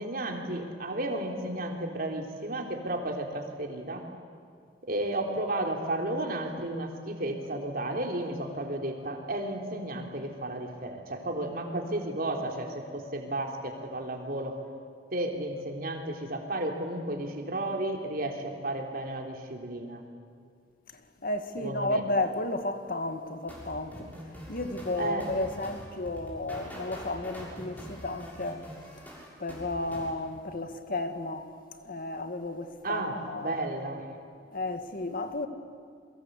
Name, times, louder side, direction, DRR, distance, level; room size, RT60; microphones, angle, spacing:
voice 1, 0.0-4.0 4.8-14.6 15.1-20.0 21.6-22.0 25.0-25.3 32.8-34.0, right 1 dB, 55° right, 3.6 m, -33 dB
voice 2, 21.2-24.1 24.5-28.6 29.4-31.5 31.8-33.6 34.5-35.5, left 2 dB, 55° left, 1.9 m, -33 dB
sound 1, 23.5-30.1, equal, 10° left, 6.8 m, -44 dB
29.0 x 23.5 x 8.3 m
head